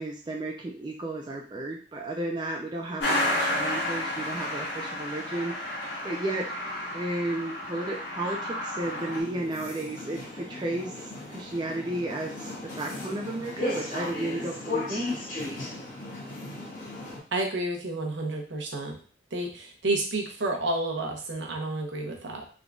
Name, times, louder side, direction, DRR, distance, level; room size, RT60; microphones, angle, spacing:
voice 1, 0.0-5.5 5.8-6.5 6.9-10.9 11.3-12.5 12.8-15.1, right 2 dB, 25° right, 0 dB, 0.4 m, -33 dB
Truck, 3.0-9.2, left 1 dB, 80° left, 1.8 m, -31 dB
sound 1, 8.8-17.2, left 2 dB, 45° left, 1.7 m, -36 dB
voice 2, 17.3-19.0 19.3-22.5, right 2 dB, 85° right, 2 dB, 0.9 m, -30 dB
3.7 x 3.6 x 2.3 m, 0.40 s
head